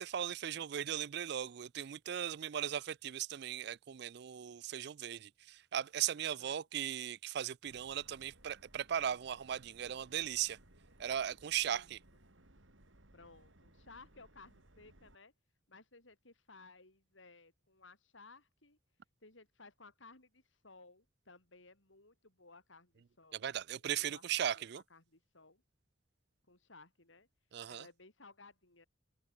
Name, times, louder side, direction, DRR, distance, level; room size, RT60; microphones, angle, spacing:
voice 1, 0.0-10.6 11.0-12.0 23.3-24.8 27.5-27.9, right 9 dB, 55° right, 0.4 m, -38 dB
Subway metro underground, 7.7-15.2, right 1 dB, 80° right, 4.5 m, -63 dB
voice 2, 13.1-15.3 15.7-18.8 19.2-23.5 23.9-25.6 26.5-27.3 27.7-28.9, left 3 dB, 80° left, 5.4 m, -59 dB
open air
head